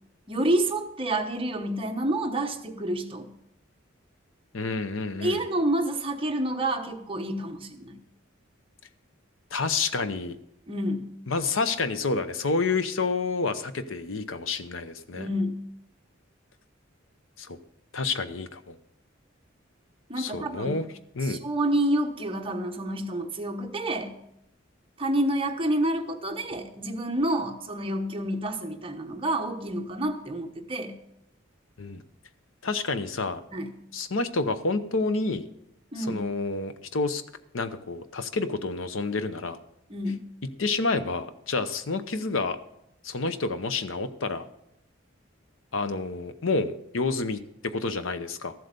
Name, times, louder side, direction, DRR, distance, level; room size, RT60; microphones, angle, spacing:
voice 1, 0.3-3.3 5.2-8.0 10.7-11.1 15.1-15.6 20.1-20.8 21.2-24.2 25.0-30.9 33.5-33.7 35.9-36.3 39.9-40.2, right 1 dB, 30° right, 3 dB, 1.1 m, -28 dB
voice 2, 4.5-5.4 9.5-10.4 11.3-15.3 17.4-17.6 17.9-18.8 20.2-20.8 21.1-21.4 31.8-32.0 32.6-33.4 33.9-35.5 35.9-37.2 37.5-39.6 40.6-42.6 43.0-44.5 45.7-48.5, left 3 dB, 85° left, 11 dB, 0.8 m, -29 dB
13.5 x 7.8 x 5.3 m, 0.80 s
head